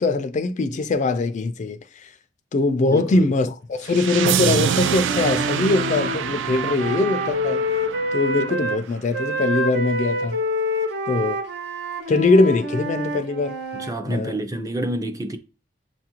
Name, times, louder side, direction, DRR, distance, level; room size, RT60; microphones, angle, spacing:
voice 1, 0.0-2.1 2.5-7.7 8.1-10.4 11.1-11.4 12.1-13.6 14.1-14.3, left 3 dB, 40° left, 0.3 m, -22 dB
voice 2, 2.9-3.3 13.7-15.4, right 1 dB, 20° right, 0.4 m, -28 dB
sound 1, 3.9-8.8, right 8 dB, 90° right, 0.3 m, -26 dB
Wind instrument woodwind instrument, 4.4-8.8 9.1-13.9, equal, 65° right, 0.7 m, -27 dB
7.2 x 2.4 x 2.9 m
head